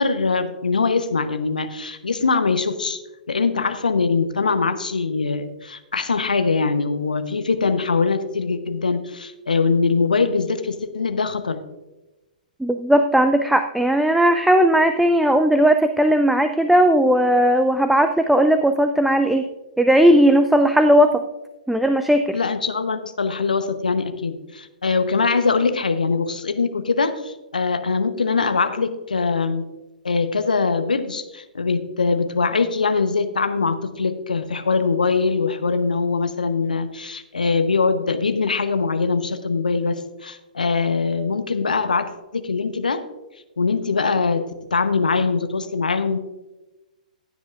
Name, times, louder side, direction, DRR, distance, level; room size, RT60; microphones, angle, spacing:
voice 1, 0.0-3.0 3.3-11.6 22.3-29.7 30.0-43.0 43.6-46.2, left 4 dB, 75° left, 10 dB, 0.9 m, -22 dB
voice 2, 12.6-19.5 19.8-21.2 21.7-22.4, right 1 dB, ahead, 7 dB, 0.4 m, -17 dB
15.5 x 9.4 x 2.5 m, 1.1 s
figure-of-eight pair, 115°, 5 cm